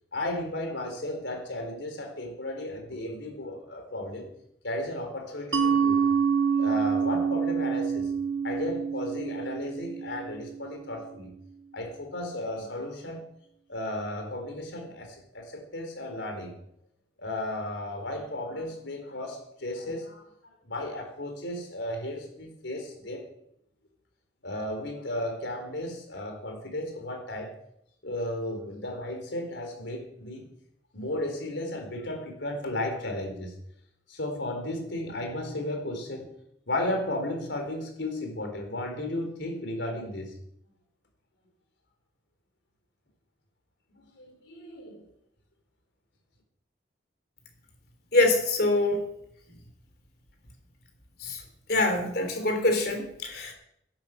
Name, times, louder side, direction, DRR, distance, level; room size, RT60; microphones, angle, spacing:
voice 1, 0.1-4.3 4.6-6.0 6.6-8.1 8.4-11.3 11.7-13.2 13.7-16.6 17.2-20.3 20.6-23.2 24.4-27.5 28.0-30.5 30.9-33.5 34.1-36.3 36.7-40.3 44.0-45.0, left 1 dB, 90° left, 4 dB, 4.3 m, -34 dB
Mallet percussion, 5.5-10.9, right 6 dB, 90° right, 1.5 m, -27 dB
voice 2, 48.1-49.0 51.2-51.4 51.7-53.5, left 2 dB, 55° left, 5 dB, 3.5 m, -24 dB
11.5 x 10.5 x 7.6 m, 0.74 s
head